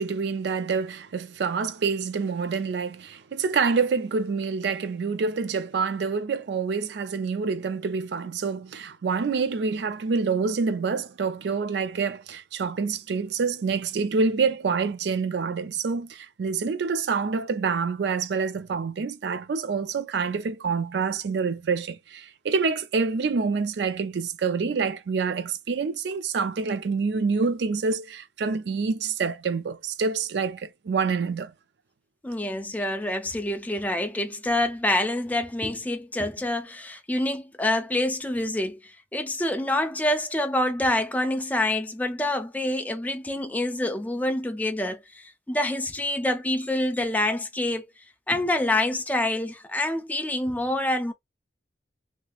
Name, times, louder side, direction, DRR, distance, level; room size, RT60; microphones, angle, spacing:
voice 1, 0.0-31.5, right 5 dB, 65° right, 0.4 m, -27 dB
voice 2, 32.2-47.9 48.3-51.1, left 1 dB, 10° left, 0.4 m, -27 dB
3.3 x 2.8 x 2.3 m
head